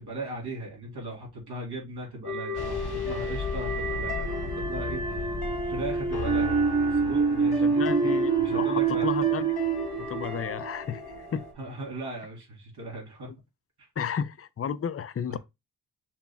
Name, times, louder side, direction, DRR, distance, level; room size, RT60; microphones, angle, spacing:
voice 1, 0.0-5.4 5.7-6.6 6.9-7.9 8.4-9.1 11.6-13.3 15.3-15.4, right 2 dB, 80° right, 2.7 m, -38 dB
sound 1, 2.2-11.5, right 4 dB, 50° right, 1.6 m, -27 dB
sound 2, 2.5-11.5, left 5 dB, 70° left, 1.1 m, -37 dB
voice 2, 7.6-9.5 10.0-11.5 14.0-15.4, left 7 dB, 40° left, 0.5 m, -32 dB
5.9 x 2.4 x 3.5 m
cardioid pair, 70°, 39 cm